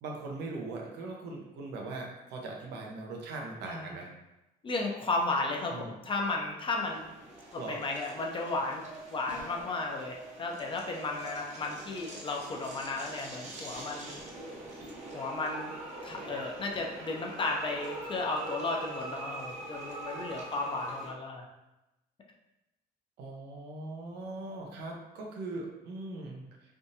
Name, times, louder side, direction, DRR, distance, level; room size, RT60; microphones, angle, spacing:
voice 1, 0.0-4.1 5.7-5.9 7.6-7.8 23.2-26.5, right 2 dB, 80° right, 0 dB, 0.7 m, -40 dB
voice 2, 3.6-4.0 4.6-7.0 7.5-8.8 9.1-14.1 15.1-15.7 16.0-21.5, left 3 dB, 30° left, 1 dB, 0.5 m, -34 dB
sound 1, 6.7-21.1, right 2 dB, 45° right, 0.7 m, -44 dB
sound 2, 9.3-9.8, left 1 dB, 10° right, 0.7 m, -46 dB
3.5 x 2.5 x 2.7 m, 0.97 s
cardioid pair, 110°, 17 cm